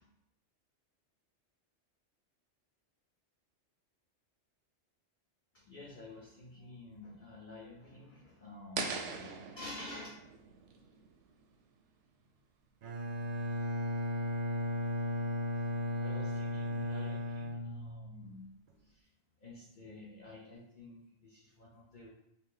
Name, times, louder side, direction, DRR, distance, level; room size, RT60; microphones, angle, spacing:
voice 1, 5.5-10.1 16.0-18.5 18.8-19.1 19.4-22.1, left 2 dB, 50° left, -5 dB, 0.8 m, -50 dB
sound 1, 8.8-11.8, right 5 dB, 80° right, 0.9 m, -42 dB
Bowed string instrument, 12.8-18.3, left 1 dB, 60° right, 0.6 m, -35 dB
3.2 x 2.8 x 3.8 m, 0.80 s
omnidirectional pair, 1.2 m